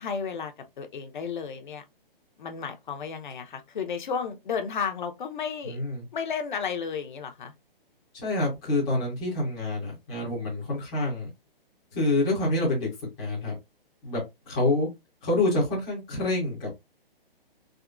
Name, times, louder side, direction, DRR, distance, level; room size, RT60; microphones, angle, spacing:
voice 1, 0.0-1.8 2.4-5.8 6.1-7.5, left 6 dB, 55° left, 0.6 m, -33 dB
voice 2, 5.6-6.0 8.1-11.3 11.9-12.9 13.2-13.5 14.0-14.2 14.5-14.9 15.2-16.7, left 2 dB, 5° left, 0.4 m, -27 dB
3.5 x 2.1 x 2.3 m
hypercardioid pair, 160°, 29 cm